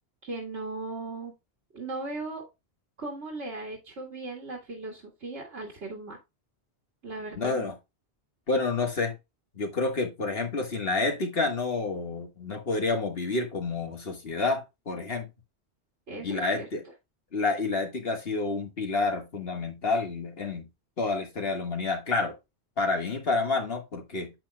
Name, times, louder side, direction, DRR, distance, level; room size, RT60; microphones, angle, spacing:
voice 1, 0.2-1.3 1.7-2.5 3.0-6.2 7.0-7.7 16.1-16.7, right 2 dB, 90° right, 2.2 m, -37 dB
voice 2, 7.4-7.7 8.5-9.2 9.6-15.3 16.2-16.8 17.3-20.7 21.0-22.4 22.8-24.3, left 3 dB, 60° left, 1.7 m, -29 dB
8.5 x 7.7 x 2.2 m
omnidirectional pair, 1.1 m